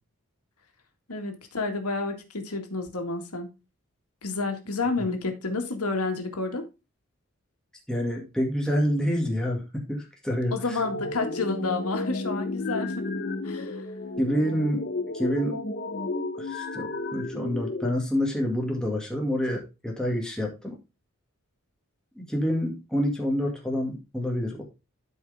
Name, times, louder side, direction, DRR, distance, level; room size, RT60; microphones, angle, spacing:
voice 1, 1.1-3.5 4.2-6.6 10.5-13.1 13.4-13.9, left 3 dB, 85° left, 4 dB, 2.0 m, -30 dB
voice 2, 7.9-10.6 14.2-14.8 15.1-15.6 16.4-20.8 22.2-24.6, equal, 5° left, -1 dB, 2.1 m, -27 dB
sound 1, 10.8-17.9, left 2 dB, 45° left, 1.1 m, -32 dB
12.0 x 4.8 x 3.5 m, 0.27 s
head